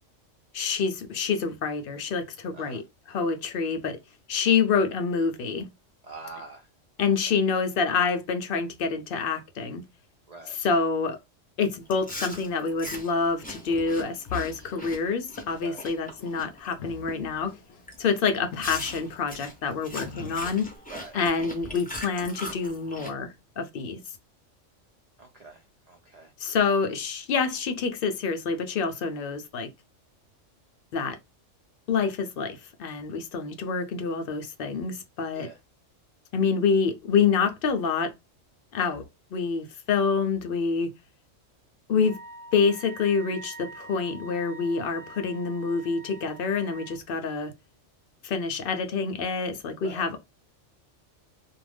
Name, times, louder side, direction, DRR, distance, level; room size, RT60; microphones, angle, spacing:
voice 1, 0.5-2.8 3.1-4.0 4.3-5.7 7.0-9.8 10.5-11.2 11.6-17.5 18.0-20.7 21.1-24.0 26.4-29.7 30.9-31.2 31.9-35.5 36.3-38.1 38.7-39.0 39.3-40.9 41.9-42.2 42.5-47.5 48.2-50.2, left 5 dB, 60° left, 0.6 m, -27 dB
voice 2, 6.0-6.7 10.3-10.6 15.6-15.8 20.9-21.2 25.2-26.3 35.3-35.6 49.8-50.1, right 3 dB, 75° right, 0.3 m, -44 dB
sound 1, 11.8-12.2 12.5-13.6 13.9-15.2 15.4-15.8 16.2-16.4 16.8-20.8, left 4 dB, 85° left, 1.0 m, -47 dB
Chewing mastication, 11.9-16.7 17.1-17.4 17.9-18.0 18.6-23.1, left 1 dB, 10° left, 0.4 m, -40 dB
Wind instrument woodwind instrument, 42.0-47.0, right 3 dB, 40° right, 0.7 m, -45 dB
2.4 x 2.1 x 3.3 m
omnidirectional pair, 1.3 m